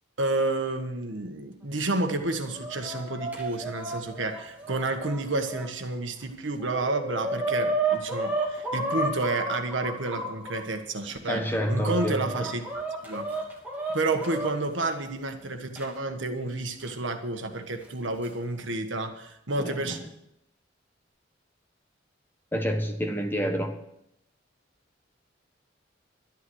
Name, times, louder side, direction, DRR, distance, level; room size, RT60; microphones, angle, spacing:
voice 1, 0.2-12.7 13.0-13.4 13.9-20.0, right 2 dB, 75° right, 6 dB, 1.5 m, -30 dB
Chicken rooster, 2.2-5.7 6.2-6.3 6.6-10.6 11.2-14.5 15.8-15.9 16.9-17.0 17.9-18.3, right 2 dB, 10° right, 2.9 m, -32 dB
voice 2, 11.3-12.2 19.6-20.0 22.5-23.8, equal, 10° left, 4 dB, 1.3 m, -28 dB
12.0 x 10.5 x 6.4 m, 0.80 s
head